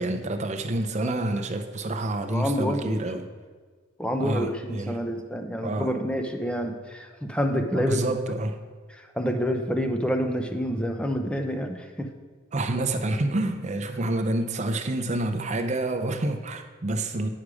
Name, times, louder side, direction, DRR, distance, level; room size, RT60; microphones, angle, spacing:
voice 1, 0.0-3.3 4.2-5.0 5.6-5.9 7.6-8.6 12.5-17.3, right 2 dB, 35° right, 6 dB, 0.7 m, -28 dB
voice 2, 2.3-3.0 4.0-8.1 8.9-12.1, equal, 5° left, 5 dB, 0.7 m, -28 dB
9.9 x 6.3 x 4.8 m, 1.5 s
head